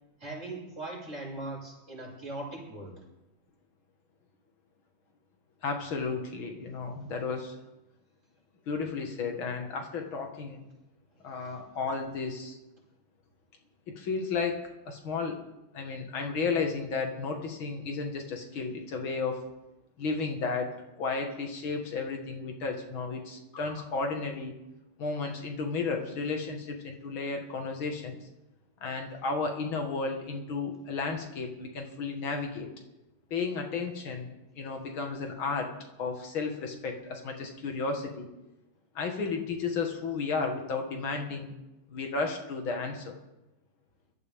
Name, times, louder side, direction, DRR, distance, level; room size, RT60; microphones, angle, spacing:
voice 1, 0.2-3.0 11.4-11.5, right 2 dB, 35° right, -4 dB, 5.9 m, -40 dB
voice 2, 5.6-7.6 8.7-10.7 11.2-12.6 13.9-15.4 15.7-19.4 20.0-24.5 25.0-28.2 28.8-32.7 33.3-35.7 36.0-38.3 38.9-41.5 41.9-43.2, left 4 dB, 85° left, 3 dB, 2.6 m, -33 dB
22.0 x 13.5 x 3.7 m, 0.96 s
omnidirectional pair, 2.2 m